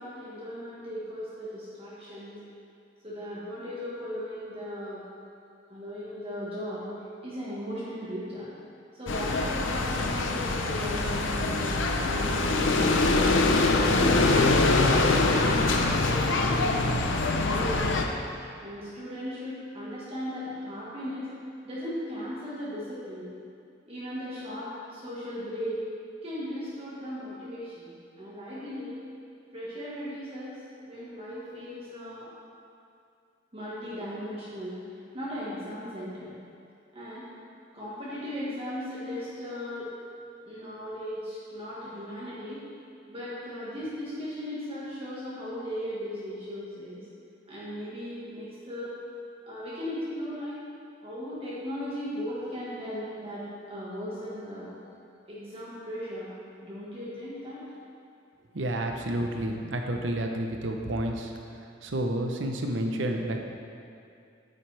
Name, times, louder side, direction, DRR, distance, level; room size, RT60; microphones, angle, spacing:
voice 1, 0.0-2.4 3.0-5.0 5.7-6.9 7.2-8.5 8.9-13.2 13.9-15.8 16.1-16.9 17.3-18.0 18.6-21.3 21.6-23.3 23.8-25.8 26.2-29.0 29.5-30.6 30.8-32.3 33.5-36.3 36.9-37.2 37.7-39.9 40.4-42.6 43.1-47.0 47.5-48.9 49.5-50.5 51.0-54.7 55.3-56.3 56.6-57.6, equal, 30° right, -9 dB, 1.6 m, -37 dB
sound 1, 9.1-18.0, left 2 dB, 75° left, 0.7 m, -24 dB
voice 2, 58.5-63.5, right 1 dB, 70° right, 3 dB, 0.9 m, -30 dB
9.3 x 9.2 x 3.4 m, 2.4 s
head